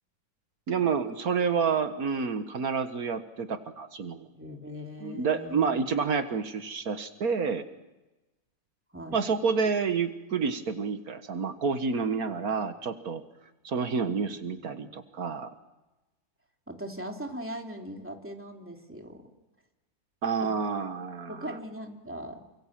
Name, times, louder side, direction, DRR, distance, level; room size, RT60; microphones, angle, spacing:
voice 1, 0.7-4.3 5.0-7.6 9.1-13.2 13.6-15.5 20.2-21.4, right 5 dB, 80° right, 8 dB, 1.9 m, -29 dB
voice 2, 4.3-5.9 8.9-9.2 16.7-19.3 20.4-20.5 21.3-22.4, equal, 10° right, 2 dB, 3.0 m, -40 dB
28.5 x 25.0 x 7.5 m, 1.0 s
omnidirectional pair, 1.6 m